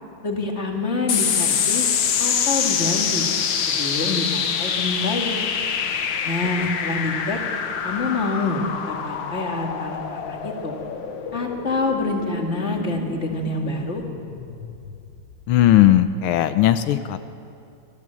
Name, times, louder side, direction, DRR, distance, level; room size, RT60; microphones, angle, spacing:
voice 1, 0.2-1.9 2.2-3.3 3.7-5.4 6.2-7.4 7.8-10.7 11.3-14.0, left 3 dB, 30° left, 1 dB, 2.5 m, -26 dB
sound 1, 1.1-15.9, left 7 dB, 65° left, 1.8 m, -26 dB
voice 2, 15.5-17.2, left 12 dB, 85° left, 10 dB, 1.6 m, -17 dB
24.5 x 15.5 x 7.7 m, 2.6 s
omnidirectional pair, 2.3 m